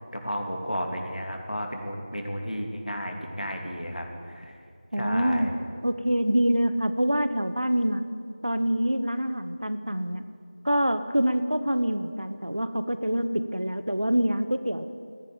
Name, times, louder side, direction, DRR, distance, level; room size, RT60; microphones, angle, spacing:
voice 1, 0.0-4.6 4.9-5.5, equal, 80° left, 2 dB, 2.9 m, -33 dB
voice 2, 4.9-5.5 5.8-8.0 8.4-10.2 10.6-14.9, equal, 55° right, 11 dB, 0.9 m, -25 dB
14.0 x 10.5 x 9.5 m, 2.3 s
figure-of-eight pair, 180°, 4 cm